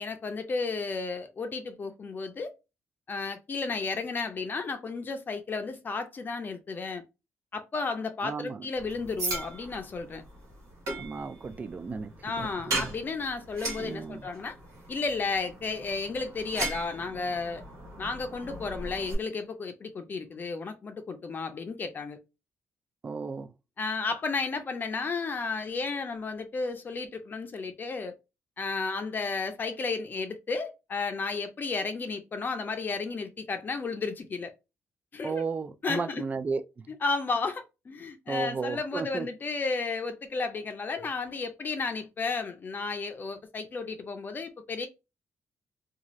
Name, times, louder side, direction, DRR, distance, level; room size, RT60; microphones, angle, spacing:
voice 1, 0.0-2.5 3.1-7.0 7.5-10.2 12.2-14.6 14.9-17.6 18.0-22.2 23.8-28.1 28.6-34.5 35.1-35.4 35.8-36.2 37.0-44.9, left 4 dB, 40° left, 0.5 m, -33 dB
voice 2, 8.2-8.7 11.0-12.9 13.8-14.3 23.0-23.5 35.2-36.6 38.3-39.3, right 5 dB, 30° right, 0.3 m, -34 dB
sound 1, 8.8-19.1, right 2 dB, 85° right, 1.3 m, -38 dB
2.6 x 2.4 x 3.0 m
cardioid pair, 95°, 5 cm